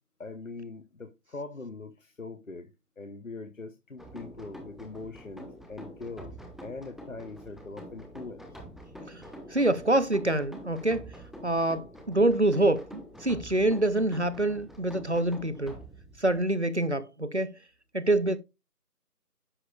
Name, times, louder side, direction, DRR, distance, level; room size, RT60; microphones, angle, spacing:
voice 1, 0.2-2.7 3.0-6.3 6.6-8.6, left 3 dB, 55° left, 0.9 m, -42 dB
sound 1, 4.0-16.4, equal, ahead, 0.7 m, -46 dB
voice 2, 9.1-11.1 11.4-15.8 16.2-17.6 17.9-18.4, right 1 dB, 45° right, 0.6 m, -26 dB
9.8 x 6.6 x 2.3 m
figure-of-eight pair, 175°, 48 cm